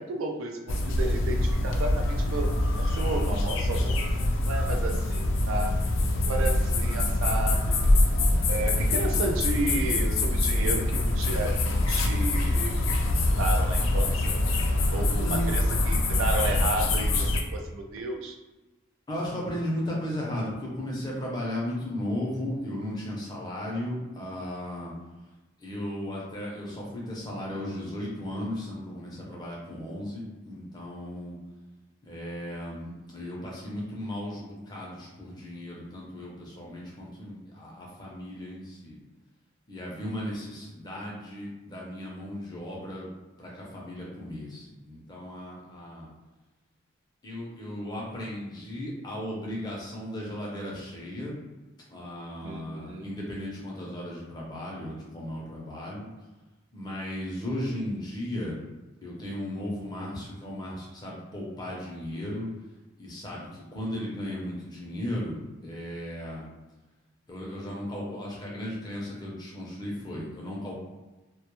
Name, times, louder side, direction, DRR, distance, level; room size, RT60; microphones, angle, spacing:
voice 1, 0.0-2.5 2.9-5.8 6.3-7.7 8.5-14.4 14.9-18.4 52.4-53.1, right 2 dB, 80° right, 3 dB, 0.4 m, -33 dB
sound 1, 0.7-17.4, left 1 dB, 75° left, 0.4 m, -25 dB
voice 2, 15.2-15.5 19.1-24.9 25.6-31.4 32.0-39.0 39.7-43.1 43.4-46.1 47.2-51.4 51.9-56.1 56.7-58.7 59.0-62.5 63.0-66.4 67.3-70.7, left 1 dB, 20° left, -4 dB, 0.5 m, -35 dB
2.1 x 2.0 x 2.9 m, 1.1 s
head